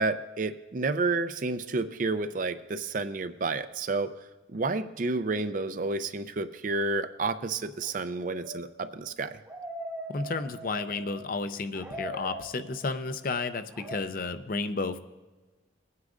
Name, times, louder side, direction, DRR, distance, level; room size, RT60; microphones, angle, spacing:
voice 1, 0.0-4.1 4.5-9.4, right 3 dB, 45° right, 11 dB, 0.5 m, -30 dB
sound 1, 7.8-11.4 11.7-13.1 13.7-14.0, equal, 10° right, 0.9 m, -41 dB
voice 2, 10.1-15.0, left 3 dB, 45° left, 10 dB, 0.5 m, -32 dB
20.0 x 9.6 x 2.5 m, 1.2 s
head